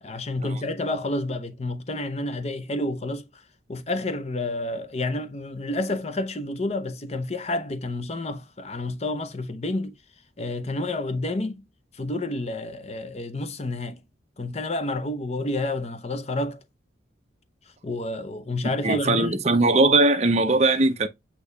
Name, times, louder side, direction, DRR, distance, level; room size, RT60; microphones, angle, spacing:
voice 1, 0.0-3.4 3.7-9.9 10.4-11.6 11.9-14.0 14.4-16.6 17.8-19.4, left 2 dB, 35° left, 0.6 m, -29 dB
voice 2, 18.8-21.1, right 2 dB, 35° right, 0.7 m, -20 dB
8.2 x 2.8 x 2.3 m
head